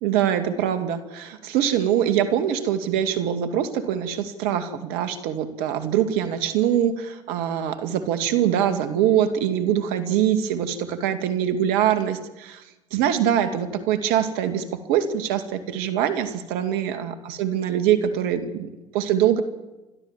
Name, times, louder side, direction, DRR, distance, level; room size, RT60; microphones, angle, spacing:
voice 1, 0.0-12.6 12.9-19.4, right 10 dB, 75° right, 8 dB, 2.1 m, -23 dB
28.5 x 12.5 x 7.4 m, 1.1 s
hypercardioid pair, 65°, 16 cm